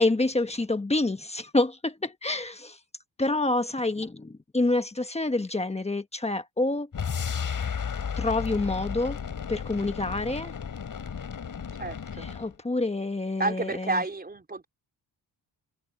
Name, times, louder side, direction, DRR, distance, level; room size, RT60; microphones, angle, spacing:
voice 1, 0.0-2.8 3.2-6.9 8.2-9.2 9.5-10.5 12.2-14.0, left 2 dB, 15° left, 1.2 m, -27 dB
sound 1, 6.9-12.5, left 7 dB, 50° left, 5.5 m, -33 dB
voice 2, 11.8-12.3 13.4-14.7, right 3 dB, 20° right, 4.3 m, -30 dB
cardioid pair, 120°, 42 cm